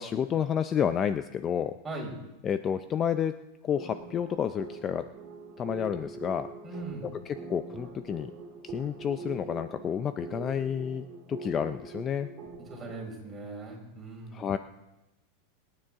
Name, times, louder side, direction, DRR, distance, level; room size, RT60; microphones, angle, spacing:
voice 1, 0.0-1.7 2.4-3.3 3.6-5.0 5.6-6.5 7.3-8.3 8.6-12.3 14.3-14.6, left 8 dB, 25° left, 11 dB, 0.4 m, -30 dB
voice 2, 1.8-2.2 6.6-7.1 12.7-14.5, right 2 dB, 15° right, -2 dB, 4.4 m, -39 dB
sound 1, 3.7-13.0, right 4 dB, 35° right, 3.4 m, -43 dB
26.5 x 9.7 x 3.6 m, 0.96 s
supercardioid pair, 145°, 0 cm